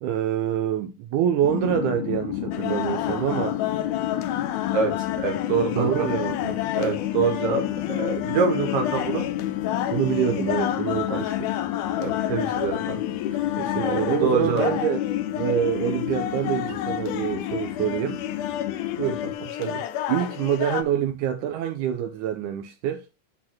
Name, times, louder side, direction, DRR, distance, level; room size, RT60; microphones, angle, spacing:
voice 1, 0.0-3.6 5.7-6.6 9.9-11.5 13.6-15.0 15.3-18.2 20.1-23.0, right 9 dB, 80° right, 2.1 m, -26 dB
sound 1, 1.4-19.3, left 13 dB, 70° left, 2.0 m, -30 dB
sound 2, 2.5-20.8, left 11 dB, 90° left, 2.2 m, -32 dB
voice 2, 5.2-6.1 6.7-9.2 11.1-11.2 12.0-13.1 13.8-14.7 19.0-19.8, right 5 dB, 55° right, 2.6 m, -26 dB
10.5 x 4.1 x 2.9 m
omnidirectional pair, 3.6 m